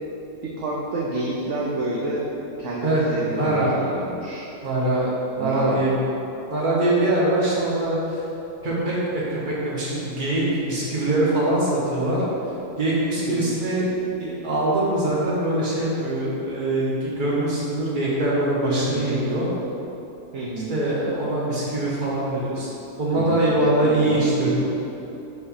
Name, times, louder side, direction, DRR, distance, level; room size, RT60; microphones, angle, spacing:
voice 1, 0.4-2.3 2.6-4.4 5.4-5.8 13.3-13.7 18.9-19.3 20.3-20.7 23.2-24.5, right 2 dB, 60° right, -4 dB, 0.9 m, -29 dB
voice 2, 3.3-3.7 4.6-5.9 6.5-8.2 8.6-12.2 12.8-13.9 14.2-19.5 20.7-22.7 23.0-24.6, right 1 dB, 35° right, -6 dB, 1.4 m, -23 dB
5.3 x 3.9 x 5.6 m, 3.0 s
omnidirectional pair, 1.6 m